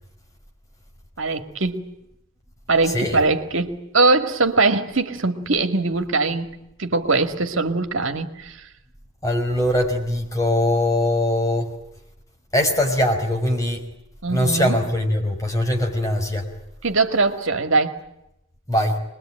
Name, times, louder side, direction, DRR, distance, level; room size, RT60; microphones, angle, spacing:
voice 1, 1.2-1.8 2.7-8.7 14.2-14.8 16.8-18.0, right 3 dB, 60° right, 2.3 m, -21 dB
voice 2, 9.2-11.8 12.5-13.8 14.3-16.5 18.7-19.0, left 1 dB, 15° left, 5.2 m, -21 dB
25.5 x 21.5 x 9.0 m
head